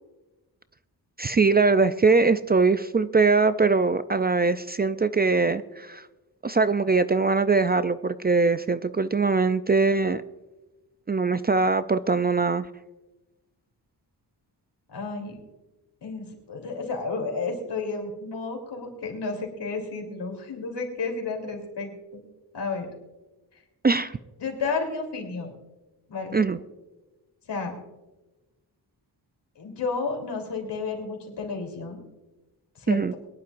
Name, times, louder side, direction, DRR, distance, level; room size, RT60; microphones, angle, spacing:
voice 1, 1.2-6.0 6.4-10.2 11.1-12.7 23.8-24.2 26.3-26.6 32.9-33.1, right 4 dB, 25° right, 12 dB, 0.4 m, -22 dB
voice 2, 14.9-15.4 16.0-22.2 22.5-22.9 24.4-25.5 26.1-26.5 27.5-27.7 29.6-32.0 32.8-33.2, left 4 dB, 80° left, 2 dB, 3.5 m, -32 dB
22.5 x 11.5 x 2.5 m, 1.1 s
wide cardioid pair, 120°, 41 cm